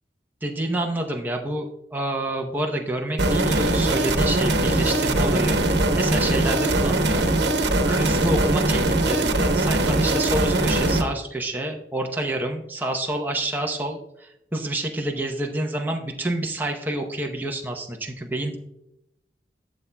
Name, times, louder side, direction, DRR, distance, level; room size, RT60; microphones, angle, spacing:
voice 1, 0.4-7.3 7.8-18.6, right 1 dB, 10° right, 1 dB, 0.7 m, -28 dB
sound 1, 3.2-11.0, right 2 dB, 80° right, 1.0 m, -21 dB
12.0 x 7.3 x 2.2 m, 0.85 s
head